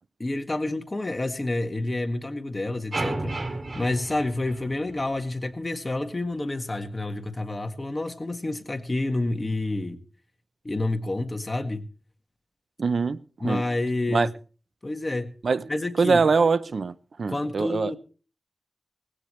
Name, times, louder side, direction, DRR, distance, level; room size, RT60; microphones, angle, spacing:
voice 1, 0.2-3.4 3.7-10.0 10.6-11.9 13.4-14.3 14.8-15.3 15.7-16.2 17.3-18.0, left 2 dB, 30° left, 1.8 m, -29 dB
sound 1, 2.9-5.2, right 2 dB, 55° right, 2.5 m, -32 dB
voice 2, 12.8-13.6 14.1-14.3 15.4-15.7 16.0-17.9, right 4 dB, 75° right, 0.6 m, -23 dB
19.5 x 16.0 x 3.2 m
wide cardioid pair, 70°, 0 cm